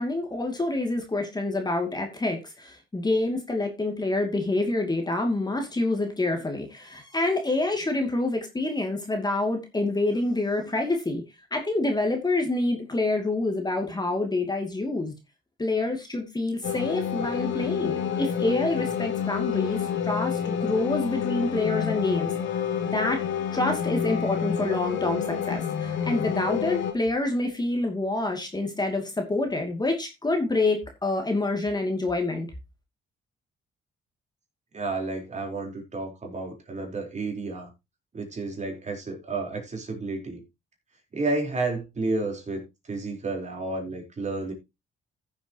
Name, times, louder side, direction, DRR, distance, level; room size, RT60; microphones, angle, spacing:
voice 1, 0.0-11.2 11.5-15.1 15.6-22.3 22.9-23.2 23.5-32.5, left 2 dB, 20° left, 2.7 m, -27 dB
sound 1, 16.6-26.9, left 8 dB, 80° left, 2.7 m, -28 dB
voice 2, 34.7-37.7 38.1-40.4 41.1-44.5, right 3 dB, 35° right, 4.3 m, -31 dB
15.0 x 7.3 x 3.1 m
cardioid pair, 90°, 20 cm